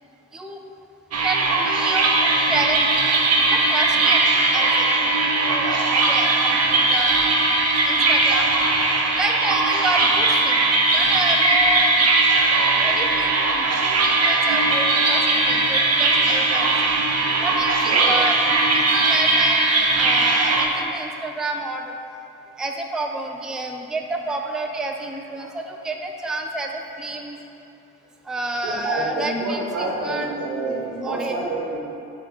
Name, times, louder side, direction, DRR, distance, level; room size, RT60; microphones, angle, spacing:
sound 1, 1.1-20.7, right 3 dB, 55° right, 0.8 m, -19 dB
voice 1, 1.2-2.1 2.5-2.9 3.5-4.2 4.5-4.9 5.4-7.1 7.8-8.5 9.1-11.9 12.8-15.2 15.5-17.0 17.4-18.4 18.7-19.6 20.0-22.0 22.6-27.4 28.3-30.3 31.0-31.3, right 2 dB, ahead, 3 dB, 0.4 m, -30 dB
voice 2, 28.6-31.8, right 2 dB, 85° right, -3 dB, 1.3 m, -28 dB
6.5 x 3.1 x 5.6 m, 2.6 s
cardioid pair, 90°, 30 cm